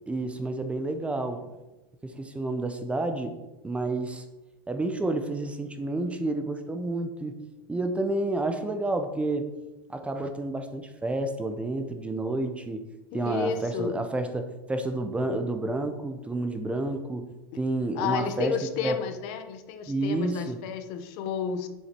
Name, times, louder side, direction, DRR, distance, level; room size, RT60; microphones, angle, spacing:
voice 1, 0.1-1.5 2.0-3.3 3.6-4.3 4.7-7.3 7.7-9.4 9.9-12.8 13.1-17.3 17.6-18.5 18.8-19.0 19.9-20.6, right 2 dB, 10° right, 7 dB, 0.7 m, -30 dB
voice 2, 13.1-14.0 17.9-21.7, left 7 dB, 55° left, 8 dB, 0.9 m, -32 dB
7.1 x 6.9 x 4.5 m, 1.0 s
supercardioid pair, 130°, 12 cm